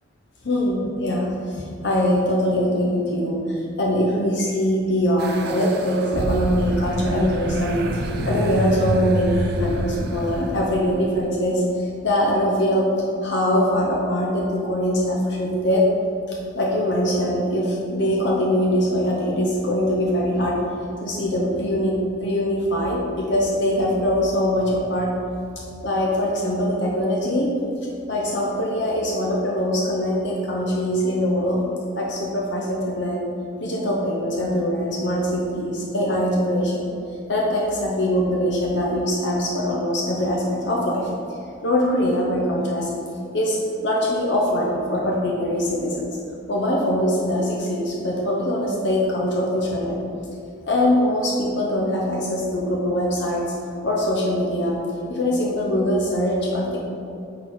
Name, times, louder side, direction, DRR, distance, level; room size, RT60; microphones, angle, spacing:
voice 1, 0.4-12.9 13.2-15.9 16.3-20.6 21.0-25.1 25.8-27.5 28.1-31.6 31.9-33.2 33.6-36.9 37.3-41.1 41.6-42.9 43.3-46.2 46.5-50.0 50.7-53.5 53.8-54.8 55.1-56.8, equal, 55° left, -3 dB, 0.7 m, -22 dB
sound 1, 5.2-11.2, right 2 dB, 50° right, 0.4 m, -27 dB
6.5 x 3.9 x 4.7 m, 2.5 s
head